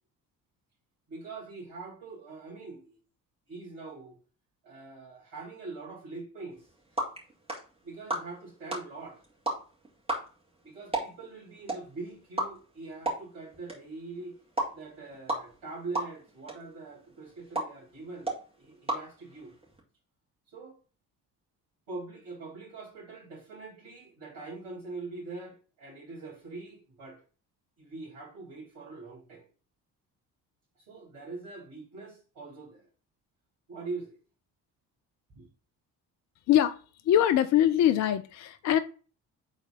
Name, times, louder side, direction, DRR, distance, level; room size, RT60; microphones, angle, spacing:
voice 1, 1.1-3.0 3.5-4.2 4.6-6.7 7.8-9.2 10.6-14.3 14.7-19.5 20.5-20.8 21.9-27.2 27.8-29.5 30.8-32.9 33.7-34.2 35.3-35.5, right 3 dB, 55° right, 2.9 m, -43 dB
sound 1, 6.5-19.8, right 2 dB, 10° right, 2.4 m, -37 dB
voice 2, 36.5-36.8 37.1-38.8, left 11 dB, 35° left, 0.4 m, -23 dB
5.0 x 3.9 x 5.4 m
figure-of-eight pair, 40°, 50 cm